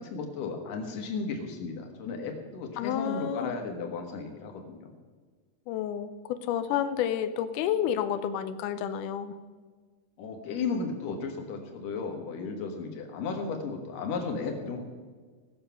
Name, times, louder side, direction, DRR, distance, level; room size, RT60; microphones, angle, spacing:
voice 1, 0.0-4.9 10.2-14.9, left 4 dB, 65° left, 3 dB, 2.9 m, -34 dB
voice 2, 2.8-3.5 5.7-9.3, left 9 dB, 85° left, 10 dB, 1.8 m, -30 dB
18.0 x 6.7 x 5.7 m, 1.5 s
omnidirectional pair, 4.3 m